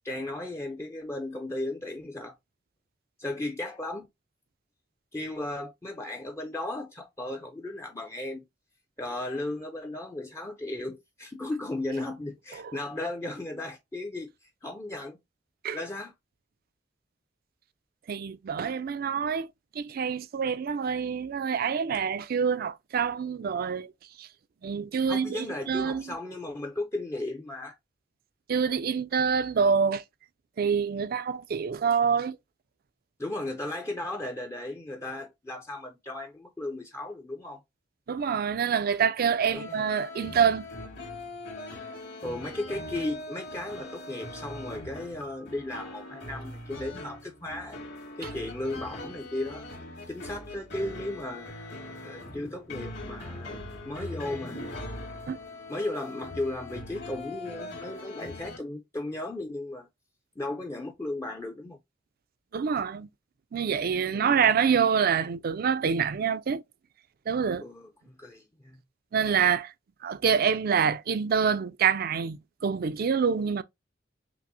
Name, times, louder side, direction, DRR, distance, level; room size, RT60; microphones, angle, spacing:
voice 1, 0.0-2.3 3.2-4.1 5.1-8.4 9.0-14.3 14.6-15.2 15.7-16.1 25.1-27.8 33.2-37.6 39.5-39.6 42.2-47.8 48.2-49.6 50.1-51.5 52.0-53.6 53.8-54.7 55.7-59.9 60.4-61.8 64.1-64.5 67.6-68.8, left 2 dB, 15° left, 0.5 m, -35 dB
voice 2, 18.1-19.5 19.8-23.9 24.2-24.3 24.6-26.0 28.5-30.0 30.6-32.4 38.1-40.7 55.3-55.4 62.5-63.1 63.5-66.6 67.3-67.6 69.1-69.7 70.0-73.6, right 6 dB, 50° right, 0.4 m, -26 dB
sound 1, 39.5-58.6, left 1 dB, 65° left, 1.9 m, -41 dB
5.9 x 2.0 x 2.7 m
head